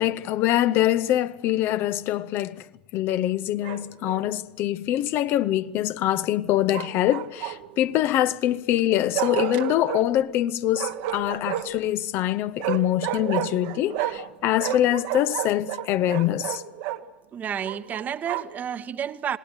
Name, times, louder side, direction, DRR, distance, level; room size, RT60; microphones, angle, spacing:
voice 1, 0.0-2.7 2.9-16.6, left 13 dB, 45° left, 0.9 m, -24 dB
Bark, 3.6-4.3 6.7-7.8 9.1-10.0 10.7-11.8 12.6-14.3 14.6-17.0 17.6-18.6, right 12 dB, 55° right, 1.4 m, -31 dB
voice 2, 17.3-19.4, right 8 dB, 30° right, 1.2 m, -30 dB
27.0 x 19.0 x 8.0 m
figure-of-eight pair, 80°, 5 cm